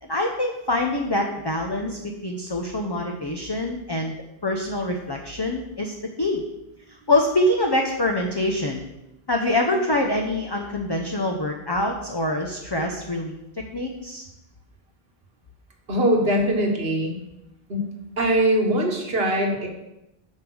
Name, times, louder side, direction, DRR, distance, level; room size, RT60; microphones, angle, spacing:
voice 1, 0.0-4.1 4.4-6.4 7.1-8.8 9.3-14.3, left 1 dB, 25° left, 1 dB, 0.7 m, -25 dB
voice 2, 15.9-17.2 17.7-17.9 18.2-19.7, right 1 dB, 70° right, 2 dB, 1.7 m, -22 dB
8.2 x 5.2 x 6.3 m, 0.93 s
omnidirectional pair, 1.1 m